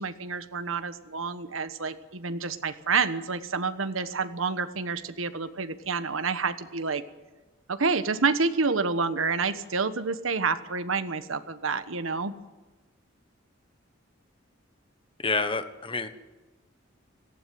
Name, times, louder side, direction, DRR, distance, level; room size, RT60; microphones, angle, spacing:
voice 1, 0.0-7.0 7.7-12.3, right 4 dB, 85° right, 11 dB, 1.2 m, -28 dB
voice 2, 15.2-16.1, left 3 dB, 25° left, 10 dB, 1.2 m, -28 dB
18.0 x 15.5 x 9.3 m, 1.2 s
head